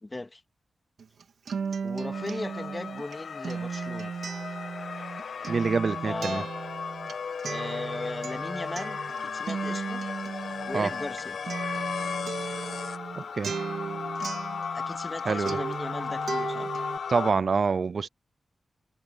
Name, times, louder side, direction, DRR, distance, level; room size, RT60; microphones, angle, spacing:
voice 1, 0.0-0.4 1.8-4.1 6.1-6.5 7.4-10.0 10.7-11.4 14.7-16.7, left 2 dB, 25° left, 1.9 m, -37 dB
Acoustic guitar, 1.0-15.2 15.5-17.0, right 6 dB, 85° right, 2.9 m, -36 dB
sound 1, 2.1-17.3, left 6 dB, 80° left, 1.1 m, -35 dB
voice 2, 5.5-6.4 10.7-10.9 13.3-13.5 15.2-15.6 17.1-18.1, right 5 dB, 60° right, 0.4 m, -26 dB
wide cardioid pair, 90°, 0 cm